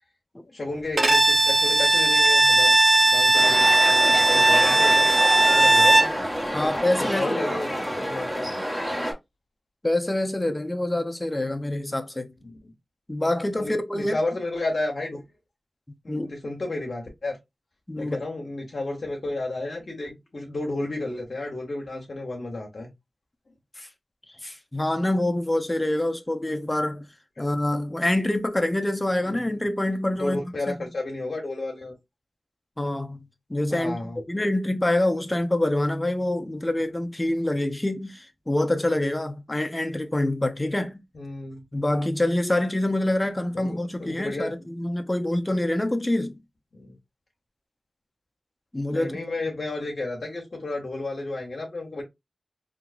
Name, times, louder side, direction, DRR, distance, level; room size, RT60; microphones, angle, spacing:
voice 1, 0.5-2.8 3.1-5.2 5.5-6.2 6.6-8.5 12.4-12.7 13.6-15.2 16.0-17.4 18.0-22.9 27.4-27.5 29.2-29.6 30.2-31.9 33.7-34.2 41.1-41.6 43.5-44.7 46.7-46.9 48.9-52.0, left 2 dB, 65° left, 1.1 m, -32 dB
Bowed string instrument, 1.0-6.2, right 2 dB, 60° right, 0.7 m, -18 dB
sound 1, 3.3-9.1, equal, 5° right, 1.7 m, -28 dB
voice 2, 6.5-7.4 9.8-12.3 13.1-14.2 16.1-16.3 17.9-18.2 23.8-23.9 24.4-27.1 27.4-30.4 30.7-30.8 32.8-33.9 34.3-41.0 41.7-46.4 48.7-49.1, left 1 dB, 25° left, 0.7 m, -26 dB
3.6 x 2.8 x 2.5 m
cardioid pair, 45°, 0 cm